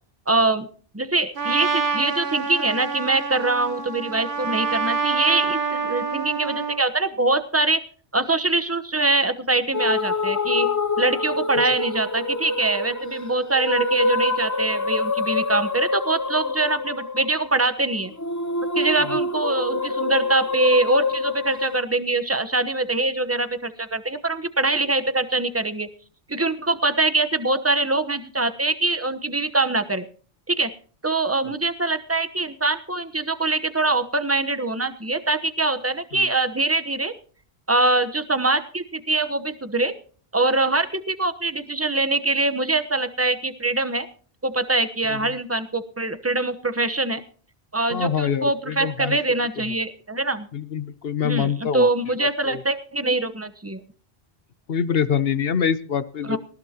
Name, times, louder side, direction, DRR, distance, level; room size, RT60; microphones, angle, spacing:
voice 1, 0.3-0.7 0.9-7.8 8.1-10.7 11.0-18.1 18.7-25.9 26.3-30.0 30.5-30.7 31.0-37.1 37.7-39.9 40.3-44.1 44.4-47.2 47.7-50.5 51.2-53.8 56.2-56.4, right 2 dB, 15° right, 11 dB, 1.0 m, -23 dB
Trumpet, 1.4-6.8, right 4 dB, 55° right, 1.3 m, -26 dB
sound 1, 9.7-21.8, left 3 dB, 20° left, 0.6 m, -26 dB
voice 2, 47.9-49.2 50.5-51.9 52.5-52.6 54.7-56.4, left 7 dB, 65° left, 14 dB, 1.1 m, -24 dB
19.0 x 17.0 x 2.9 m, 0.42 s
omnidirectional pair, 1.1 m